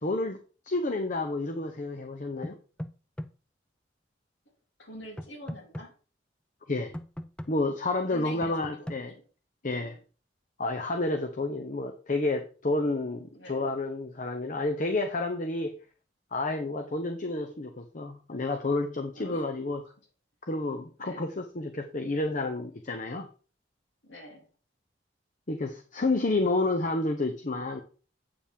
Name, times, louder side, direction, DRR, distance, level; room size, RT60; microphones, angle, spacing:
voice 1, 0.0-2.6 6.7-6.9 7.5-9.1 9.6-9.9 10.6-15.8 16.3-19.8 20.5-23.3 25.5-27.8, left 2 dB, 45° left, 5 dB, 0.9 m, -30 dB
sound 1, 2.4-3.3 5.2-5.9 6.9-7.5 8.4-9.0, equal, 5° left, 0.5 m, -38 dB
voice 2, 4.8-5.9 8.1-9.2 9.6-10.0 13.3-13.8 19.1-19.5 19.8-19.9 21.0-21.3 24.0-24.5, left 1 dB, 80° left, 0 dB, 3.4 m, -46 dB
8.7 x 7.0 x 3.7 m, 0.36 s
head